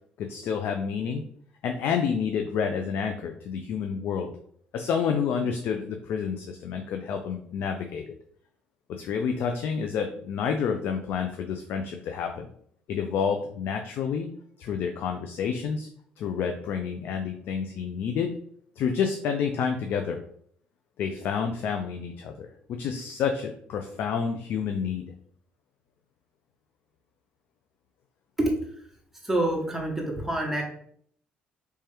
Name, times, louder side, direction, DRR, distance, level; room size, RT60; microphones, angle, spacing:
voice 1, 0.2-1.2 1.6-4.3 4.7-8.0 8.9-12.5 12.9-14.3 14.6-15.9 16.2-18.3 18.8-20.2 21.0-25.0, left 6 dB, 65° left, 4 dB, 0.4 m, -29 dB
voice 2, 29.2-30.6, right 1 dB, 5° right, -1 dB, 1.1 m, -26 dB
3.2 x 3.0 x 3.3 m, 0.63 s
supercardioid pair, 70°, 4 cm